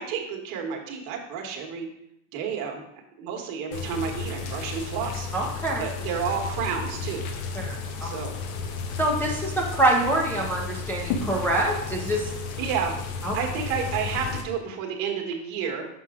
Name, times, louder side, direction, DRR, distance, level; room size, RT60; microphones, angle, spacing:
voice 1, 0.0-1.9 2.3-2.9 3.2-5.3 5.8-7.2 8.0-8.3 12.3-13.0 13.3-15.9, right 6 dB, 55° right, 2 dB, 1.4 m, -30 dB
sound 1, 3.7-14.4, left 5 dB, 90° left, 1.0 m, -33 dB
voice 2, 5.3-5.8 7.5-8.1 9.0-12.3 13.2-13.3, right 2 dB, 5° left, -5 dB, 0.7 m, -25 dB
6.2 x 5.9 x 3.6 m, 0.80 s
cardioid pair, 150°, 40 cm